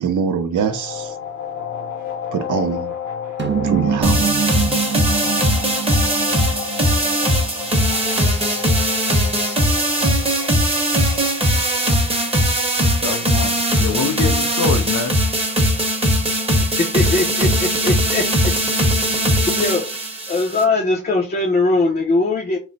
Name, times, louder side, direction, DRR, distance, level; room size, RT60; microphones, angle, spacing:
voice 1, 0.0-1.1 2.3-2.9 3.6-4.3, right 6 dB, 85° right, 0.6 m, -23 dB
sound 1, 0.7-19.3, left 8 dB, 70° left, 0.9 m, -33 dB
sound 2, 3.4-8.0, right 7 dB, 40° right, 0.5 m, -25 dB
sound 3, 4.0-20.6, equal, 20° right, 0.9 m, -19 dB
voice 2, 13.0-15.2, left 5 dB, 90° left, 0.6 m, -25 dB
voice 3, 16.6-18.2 19.0-19.1 19.5-19.8 20.3-22.6, left 3 dB, 30° left, 0.5 m, -20 dB
3.0 x 2.0 x 3.8 m
wide cardioid pair, 100°, 30 cm